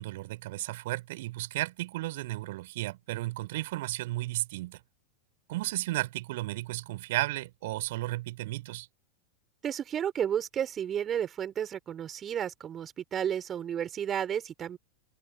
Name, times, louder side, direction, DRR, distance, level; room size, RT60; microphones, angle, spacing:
voice 1, 0.0-4.8 5.5-8.9, right 18 dB, 50° right, 4.8 m, -34 dB
voice 2, 9.6-14.8, right 9 dB, 25° right, 4.8 m, -32 dB
figure-of-eight pair, 90°, 0 cm